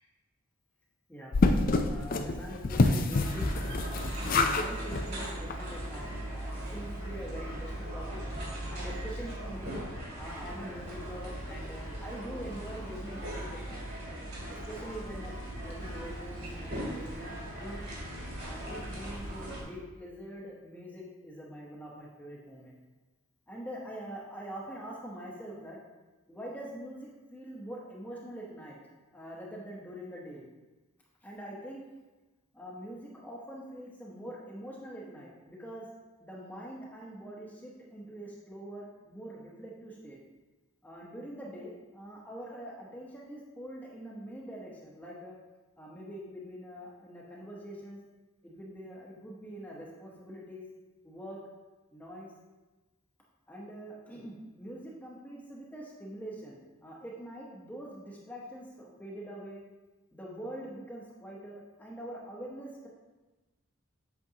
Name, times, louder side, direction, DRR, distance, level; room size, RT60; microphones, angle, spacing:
sound 1, 1.3-4.7 4.9-5.1 5.5-5.6 5.8-5.9, left 3 dB, 40° left, 0.4 m, -27 dB
voice 1, 1.9-3.9 4.4-8.2 8.7-9.8 10.2-13.9 14.5-17.8 18.4-22.8 23.5-25.8 26.3-28.8 29.1-30.5 31.2-31.8 32.5-35.9 36.2-40.2 40.8-45.3 45.8-48.0 48.4-50.6 51.0-51.4 51.9-52.3 53.5-59.6 60.1-62.9, equal, 10° left, -4 dB, 0.9 m, -44 dB
sound 2, 3.1-19.6, right 1 dB, 50° right, 2.3 m, -39 dB
8.2 x 6.0 x 2.9 m, 1.2 s
head